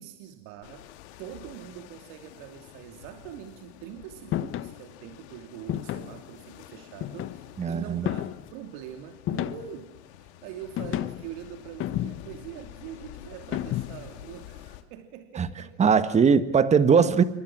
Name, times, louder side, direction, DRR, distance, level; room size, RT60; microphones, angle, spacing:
voice 1, 0.0-15.9 17.0-17.1, right 10 dB, 60° right, 5 dB, 2.9 m, -43 dB
sound 1, 0.6-14.8, left 12 dB, 75° left, 2.7 m, -48 dB
sound 2, 4.3-4.7 5.7-6.2 7.0-7.6 8.1-8.5 9.3-9.8 10.8-11.3 11.8-12.4 13.5-14.1, left 13 dB, 40° left, 1.3 m, -31 dB
voice 2, 7.6-8.1 15.4-15.5 15.8-17.2, right 6 dB, 20° right, 13 dB, 1.6 m, -20 dB
28.5 x 25.0 x 6.2 m, 0.79 s
supercardioid pair, 135°, 34 cm